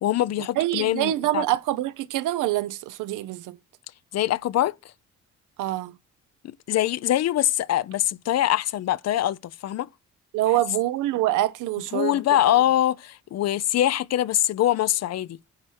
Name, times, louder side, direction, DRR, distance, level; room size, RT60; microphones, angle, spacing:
voice 1, 0.0-1.4 4.1-4.9 6.4-9.9 11.9-15.4, left 12 dB, 60° left, 0.5 m, -23 dB
voice 2, 0.6-3.6 5.6-5.9 10.3-12.2, right 15 dB, 90° right, 0.8 m, -25 dB
9.7 x 4.3 x 6.3 m
cardioid pair, 90°, 30 cm